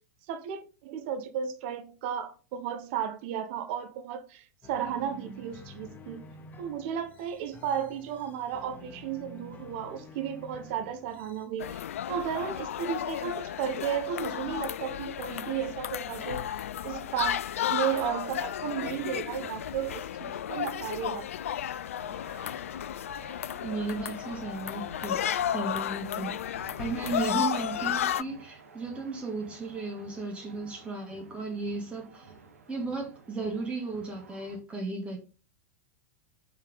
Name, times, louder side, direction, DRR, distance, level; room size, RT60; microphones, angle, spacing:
voice 1, 0.3-6.2 6.6-21.3, right 9 dB, 45° right, 1.2 m, -34 dB
sound 1, 4.6-11.5, left 2 dB, 20° left, 1.0 m, -49 dB
sound 2, 11.6-28.2, left 10 dB, 60° left, 0.3 m, -33 dB
sound 3, 17.7-34.6, right 4 dB, 70° right, 1.5 m, -52 dB
voice 2, 23.5-25.2 25.5-32.3 32.7-35.2, right 3 dB, 15° right, 2.4 m, -35 dB
6.0 x 4.5 x 5.5 m
figure-of-eight pair, 95°, 8 cm